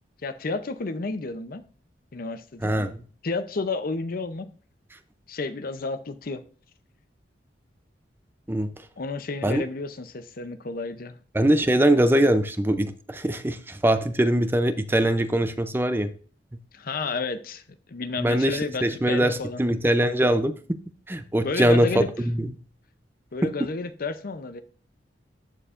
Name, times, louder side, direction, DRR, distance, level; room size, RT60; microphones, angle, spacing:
voice 1, 0.2-1.6 2.1-2.7 3.2-4.5 5.3-6.4 9.0-11.2 16.7-17.6 17.9-19.6 21.4-22.1 23.3-24.6, left 3 dB, 55° left, 11 dB, 0.6 m, -31 dB
voice 2, 2.6-3.0 8.5-8.7 9.4-9.6 11.3-16.1 18.2-20.5 21.1-22.5, right 1 dB, 10° right, 10 dB, 0.5 m, -22 dB
13.5 x 4.6 x 2.5 m, 0.40 s
head